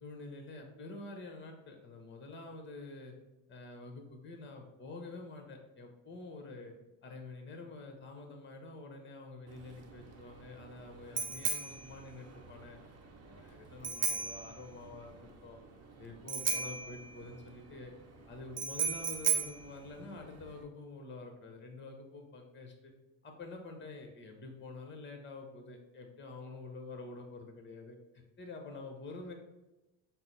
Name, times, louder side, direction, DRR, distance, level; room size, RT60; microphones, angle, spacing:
voice 1, 0.0-3.1 3.5-6.7 7.0-12.8 13.2-15.6 16.0-17.9 18.2-22.9 23.2-29.3, left 3 dB, 25° left, 4 dB, 0.9 m, -47 dB
Bicycle bell, 9.5-20.6, right 5 dB, 35° right, 0.8 m, -37 dB
5.9 x 2.0 x 4.0 m, 1.0 s
supercardioid pair, 70°, 44 cm